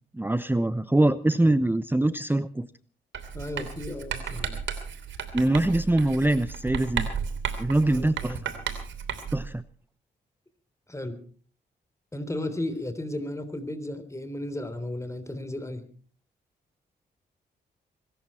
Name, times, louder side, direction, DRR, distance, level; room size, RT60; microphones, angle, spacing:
voice 1, 0.1-2.7 5.3-7.1 7.6-8.4 9.3-9.6, right 1 dB, 10° right, 14 dB, 0.8 m, -23 dB
Writing, 3.1-9.5, right 7 dB, 80° right, 3.1 m, -34 dB
voice 2, 3.3-4.6 7.9-8.4 10.9-11.2 12.1-15.8, left 1 dB, 15° left, 10 dB, 3.5 m, -34 dB
23.5 x 13.5 x 4.4 m, 0.42 s
cardioid pair, 55°, 19 cm